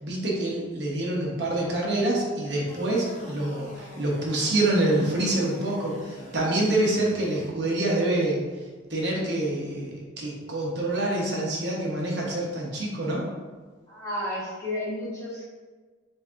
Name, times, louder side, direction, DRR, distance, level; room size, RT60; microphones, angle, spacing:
voice 1, 0.0-8.4 8.9-13.2, right 1 dB, 60° right, -3 dB, 0.9 m, -26 dB
sound 1, 2.7-7.5, equal, 40° left, 0.9 m, -45 dB
voice 2, 13.9-15.4, left 1 dB, 15° left, -7 dB, 1.2 m, -32 dB
7.8 x 2.6 x 2.5 m, 1.4 s
head